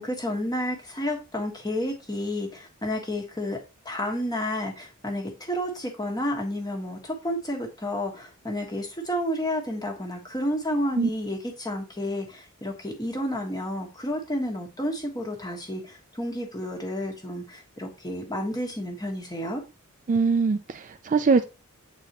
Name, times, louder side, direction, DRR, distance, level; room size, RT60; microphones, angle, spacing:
voice 1, 0.0-3.6 3.8-19.6, left 1 dB, 20° left, 1.3 m, -31 dB
voice 2, 20.1-21.4, right 4 dB, 35° right, 0.4 m, -22 dB
7.9 x 4.1 x 2.9 m
head